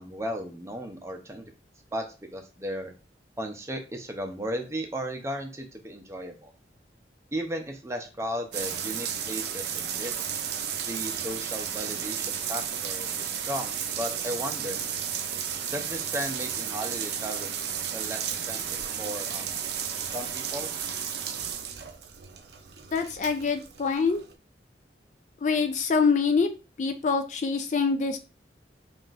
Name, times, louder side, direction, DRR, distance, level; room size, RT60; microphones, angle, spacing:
voice 1, 0.0-1.4 1.9-2.0 2.3-2.9 3.4-6.5 7.3-10.3 10.9-14.8 15.7-17.5 17.9-18.6 19.0-19.5 20.1-20.7, equal, 15° right, 4 dB, 0.6 m, -35 dB
sound 1, 8.5-24.3, right 8 dB, 65° right, 0.5 m, -33 dB
voice 2, 22.9-24.2 25.4-26.5 26.8-28.2, left 5 dB, 40° left, 7 dB, 0.4 m, -25 dB
5.8 x 2.5 x 2.5 m, 0.33 s
head